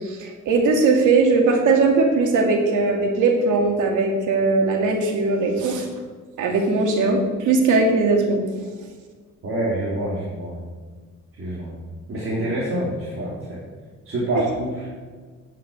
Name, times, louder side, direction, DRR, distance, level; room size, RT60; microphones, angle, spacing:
voice 1, 0.0-5.9 6.4-8.4 14.3-14.4, right 3 dB, 80° right, 2 dB, 2.4 m, -19 dB
voice 2, 9.4-10.6 11.4-11.7 12.1-13.6 14.1-14.8, right 1 dB, 45° right, -7 dB, 3.6 m, -26 dB
9.3 x 7.5 x 8.1 m, 1.5 s
cardioid pair, 90°, 30 cm